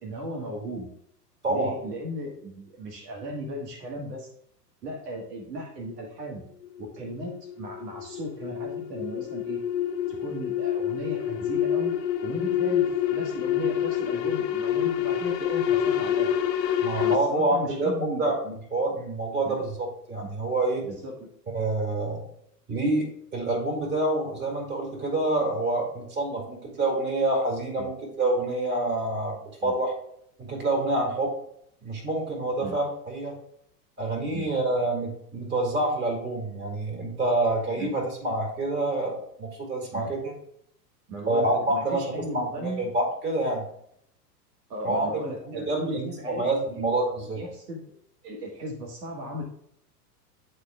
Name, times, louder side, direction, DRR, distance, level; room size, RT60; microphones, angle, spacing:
voice 1, 0.0-0.9 1.5-4.3 4.8-6.4 6.8-9.6 10.1-11.9 12.2-16.3 17.0-18.6 19.4-19.6 20.9-21.3 27.8-27.9 29.6-29.7 32.6-32.8 34.3-34.5 37.8-38.0 39.9-40.1 41.1-42.8 44.7-46.8 47.3-48.0 48.2-49.4, right 1 dB, 75° right, 1 dB, 1.4 m, -36 dB
sound 1, 6.6-17.2, left 10 dB, 35° left, 0.6 m, -27 dB
voice 2, 16.8-18.3 18.7-20.8 21.5-22.2 22.7-23.0 23.3-29.3 29.6-29.9 30.4-31.3 31.8-33.3 34.0-40.3 41.3-43.6 44.8-47.4, right 2 dB, 20° right, 0 dB, 2.3 m, -27 dB
9.6 x 4.4 x 2.2 m, 0.70 s
hypercardioid pair, 100°, 49 cm